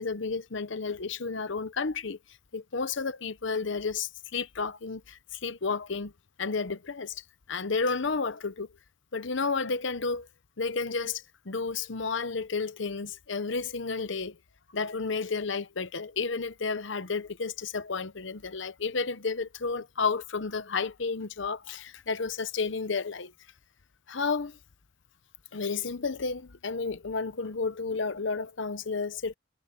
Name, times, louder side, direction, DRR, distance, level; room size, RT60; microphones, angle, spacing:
voice 1, 0.0-2.2 2.5-6.1 6.4-7.2 7.5-8.7 9.1-10.3 10.6-14.4 14.7-23.3 24.1-24.6 25.5-29.3, left 4 dB, 60° left, 0.9 m, -31 dB
head